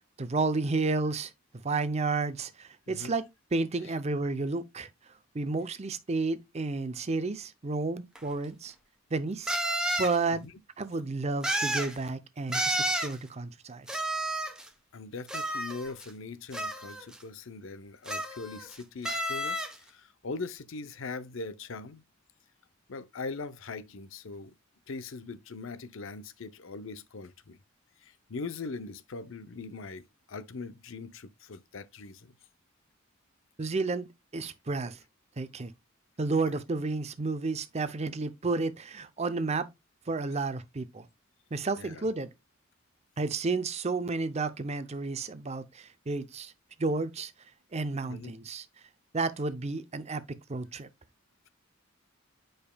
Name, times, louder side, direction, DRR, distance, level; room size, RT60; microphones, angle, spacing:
voice 1, 0.2-4.9 5.3-8.7 9.1-9.5 10.0-10.4 10.8-13.9 33.6-34.1 34.3-35.0 35.4-35.7 36.2-39.7 40.1-41.1 41.5-42.3 43.2-46.5 46.8-47.3 47.7-48.6 49.1-50.9, right 3 dB, 30° right, 0.6 m, -31 dB
sound 1, 8.2-8.3 9.5-10.2 11.4-11.9 12.5-13.1 13.9-14.7 15.3-16.1 16.5-17.1 18.1-18.7 19.0-19.8, right 1 dB, 5° right, 0.8 m, -31 dB
voice 2, 14.9-22.0 22.9-24.6 24.9-27.6 28.0-32.3 36.5-36.6 41.8-42.1 48.1-48.3, left 4 dB, 65° left, 0.6 m, -41 dB
8.9 x 5.2 x 2.2 m
head